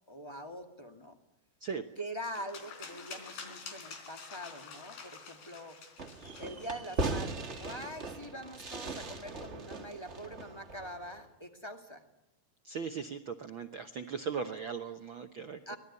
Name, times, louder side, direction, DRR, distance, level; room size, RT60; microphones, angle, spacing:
voice 1, 0.1-1.1 2.0-5.8 6.4-12.0 15.6-15.8, equal, 10° left, 5 dB, 1.4 m, -44 dB
voice 2, 1.6-1.9 12.6-15.7, right 6 dB, 75° right, 6 dB, 1.1 m, -38 dB
sound 1, 2.2-7.4, left 5 dB, 85° left, 5.4 m, -48 dB
Fireworks, 6.0-11.2, right 2 dB, 35° right, 1.0 m, -39 dB
25.0 x 20.0 x 9.8 m, 0.92 s
omnidirectional pair, 4.0 m